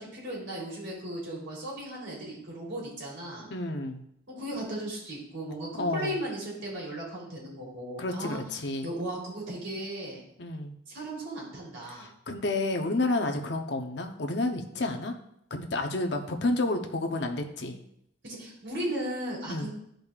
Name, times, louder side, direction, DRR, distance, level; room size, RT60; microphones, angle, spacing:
voice 1, 0.0-3.5 4.3-8.4 8.8-10.2 10.9-12.1 18.2-19.7, right 1 dB, 75° right, -4 dB, 3.3 m, -36 dB
voice 2, 3.5-4.0 5.8-6.2 8.0-8.9 10.4-10.7 11.9-15.1 15.5-17.8 19.5-19.7, left 2 dB, 60° left, 4 dB, 0.8 m, -30 dB
13.5 x 5.2 x 2.4 m, 0.75 s
head